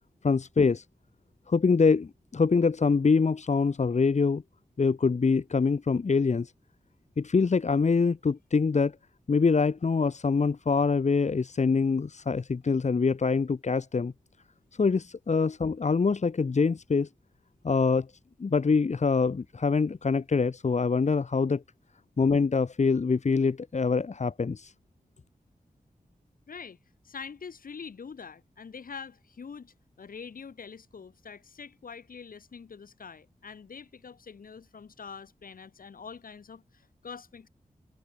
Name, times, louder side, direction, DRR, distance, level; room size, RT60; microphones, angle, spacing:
voice 1, 0.2-0.8 1.5-4.4 4.8-6.5 7.2-8.9 9.3-14.1 14.8-17.1 17.6-18.1 18.4-21.6 22.2-24.7, left 4 dB, 55° left, 2.5 m, -24 dB
voice 2, 26.5-26.8 27.0-37.5, left 6 dB, 85° left, 5.6 m, -44 dB
wide cardioid pair, 110°, 14 cm